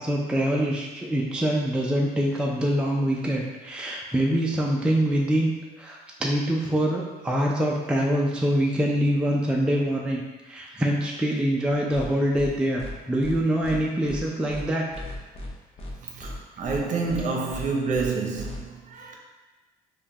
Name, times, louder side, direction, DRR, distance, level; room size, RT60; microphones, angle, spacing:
voice 1, 0.0-5.5 5.8-14.8, equal, 5° right, -2 dB, 0.4 m, -25 dB
sound 1, 11.9-12.1 12.3-12.5 12.8-12.9 13.2-13.3 13.6-13.8 14.1-14.2 14.5-14.6 14.9-15.5 15.8-15.9 16.2-16.3 16.6-16.8 17.1-17.2 17.5-17.6 17.9-18.1 18.3-18.6, left 1 dB, 35° left, 0.7 m, -37 dB
voice 2, 16.0-19.2, right 4 dB, 50° right, 0 dB, 0.7 m, -28 dB
4.8 x 2.3 x 2.8 m, 1.2 s
cardioid pair, 110°, 17 cm